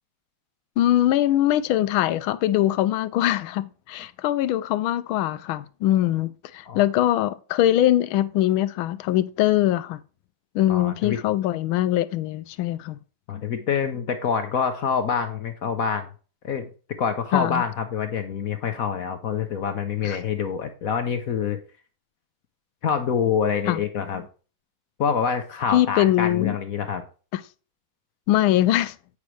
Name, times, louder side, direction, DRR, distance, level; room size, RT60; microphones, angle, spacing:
voice 1, 0.8-10.0 10.5-13.0 17.3-17.6 20.0-20.2 23.7-23.8 25.7-26.6 27.3-27.4 28.3-28.9, left 13 dB, 80° left, 1.4 m, -22 dB
voice 2, 10.7-11.2 13.3-16.1 16.4-16.7 17.0-21.6 22.8-24.3 25.0-27.0, left 6 dB, 60° left, 0.9 m, -26 dB
8.4 x 6.0 x 3.1 m
omnidirectional pair, 2.3 m